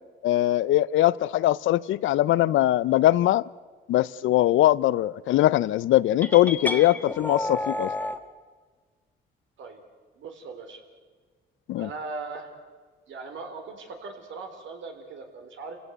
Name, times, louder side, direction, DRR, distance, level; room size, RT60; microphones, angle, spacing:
voice 1, 0.2-3.5 3.9-7.9 11.7-11.9, left 14 dB, 80° left, 0.6 m, -21 dB
sound 1, 6.2-8.2, left 1 dB, 10° left, 1.5 m, -30 dB
voice 2, 10.1-10.8 11.8-12.5 13.1-15.8, right 3 dB, 70° right, 3.7 m, -39 dB
27.5 x 16.5 x 8.1 m
cardioid pair, 90°, 20 cm